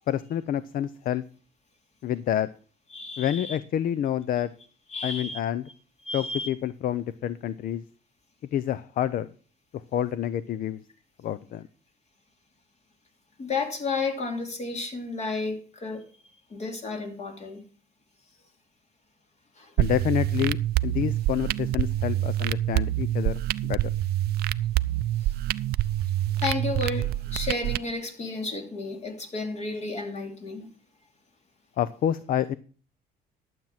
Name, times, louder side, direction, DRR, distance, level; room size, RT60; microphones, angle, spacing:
voice 1, 0.1-1.2 2.0-2.5 3.2-4.5 5.0-5.6 6.1-7.8 8.5-9.3 9.7-10.8 11.2-11.6 19.8-23.9 31.8-32.5, left 10 dB, 55° left, 0.6 m, -28 dB
voice 2, 2.9-3.6 4.9-5.4 6.1-6.5 13.4-16.0 16.5-17.6 19.6-19.7 26.4-30.7, left 3 dB, 40° left, 2.9 m, -32 dB
sound 1, 19.8-27.8, right 14 dB, 70° right, 0.5 m, -26 dB
12.0 x 7.6 x 5.8 m
cardioid pair, 110°, 17 cm